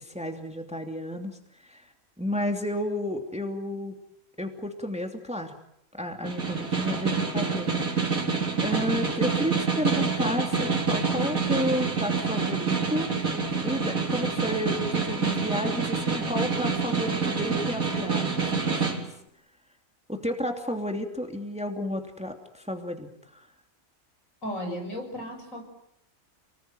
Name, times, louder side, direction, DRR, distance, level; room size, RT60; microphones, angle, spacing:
voice 1, 0.0-1.9 2.2-3.9 4.4-5.5 5.9-7.9 8.2-13.1 13.6-18.8 20.1-23.1 23.3-23.5, equal, 5° right, 4 dB, 2.8 m, -32 dB
Snare drum, 6.2-19.0, right 4 dB, 80° right, 4.4 m, -27 dB
voice 2, 24.4-25.6, equal, 65° left, 3 dB, 7.2 m, -34 dB
29.5 x 20.5 x 9.2 m, 0.74 s
omnidirectional pair, 1.5 m